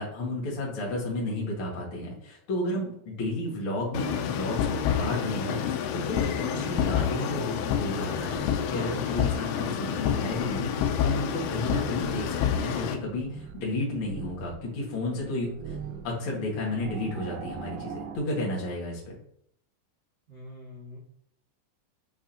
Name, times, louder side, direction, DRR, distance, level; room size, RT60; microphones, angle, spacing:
voice 1, 0.0-6.2 6.5-15.5 16.0-19.2, left 1 dB, 45° left, -3 dB, 1.8 m, -32 dB
sound 1, 3.9-12.9, left 9 dB, 90° left, 2.9 m, -28 dB
sound 2, 6.3-18.2, right 6 dB, 85° right, 2.9 m, -43 dB
voice 2, 20.3-21.0, left 1 dB, 65° right, -7 dB, 0.9 m, -44 dB
8.4 x 4.9 x 2.9 m, 0.68 s
omnidirectional pair, 5.0 m